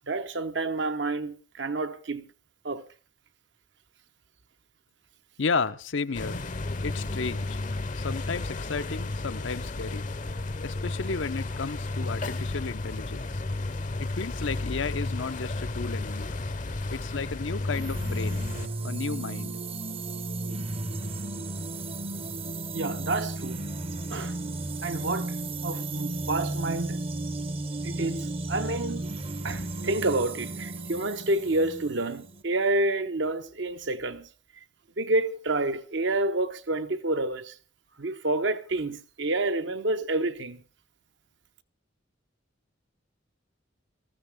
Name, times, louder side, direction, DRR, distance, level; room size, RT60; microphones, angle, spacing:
voice 1, 0.1-2.2 2.6-2.8 22.7-23.7 24.1-24.3 24.8-25.3 25.6-27.0 27.8-29.1 29.4-34.3 35.0-37.5 38.0-40.6, right 2 dB, 65° right, 1.0 m, -29 dB
voice 2, 5.4-6.4 6.8-7.6 8.0-10.1 10.6-13.4 14.0-16.3 16.9-18.5 18.8-19.5, left 4 dB, 75° left, 0.7 m, -33 dB
sound 1, 6.1-18.7, left 2 dB, 40° left, 0.7 m, -32 dB
sound 2, 17.7-32.4, right 2 dB, 30° right, 0.7 m, -34 dB
19.0 x 14.0 x 3.6 m
head